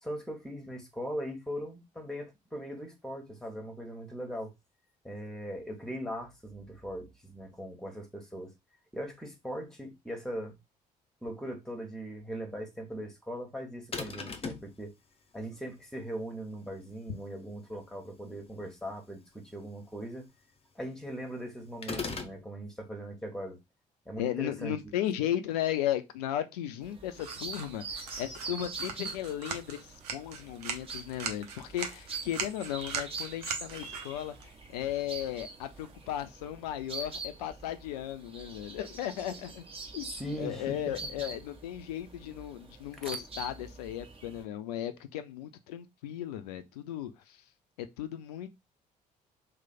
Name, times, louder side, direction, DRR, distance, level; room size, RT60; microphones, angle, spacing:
voice 1, 0.0-4.5 5.0-8.5 8.9-10.5 11.2-14.9 15.3-20.3 20.7-23.6 24.0-25.0 40.1-40.8 43.0-43.1, equal, ahead, 1.2 m, -40 dB
sound 1, 13.9-14.7 21.8-22.4, left 5 dB, 30° left, 0.8 m, -36 dB
voice 2, 24.2-39.6 39.9-40.1 40.4-47.4 47.8-48.5, left 11 dB, 70° left, 0.4 m, -36 dB
sound 2, 26.8-44.4, right 3 dB, 30° right, 1.2 m, -44 dB
sound 3, 27.2-36.3, right 6 dB, 75° right, 0.6 m, -42 dB
3.1 x 2.1 x 4.1 m
figure-of-eight pair, 50°, 20 cm